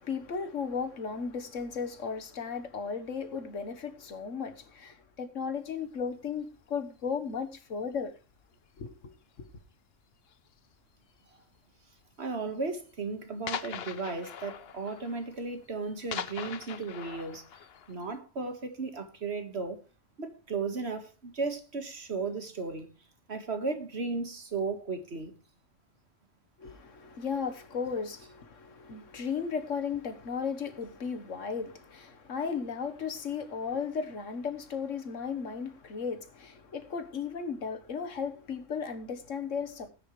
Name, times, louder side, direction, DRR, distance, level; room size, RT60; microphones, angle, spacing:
voice 1, 0.0-8.1 8.8-9.1 26.6-39.9, left 6 dB, 80° left, 1.7 m, -35 dB
sound 1, 5.8-6.0 6.8-7.2 7.5-7.9 8.3-8.5 9.0-9.1 9.3-9.4 10.3-10.7 11.5-11.6 12.0-12.1 12.5-12.6 12.8-12.9 13.5-18.2, left 8 dB, 55° left, 0.9 m, -41 dB
voice 2, 12.2-17.4 17.9-19.8 20.2-22.9 23.3-25.3, right 4 dB, 55° right, 1.9 m, -35 dB
18.5 x 10.0 x 3.2 m
omnidirectional pair, 1.3 m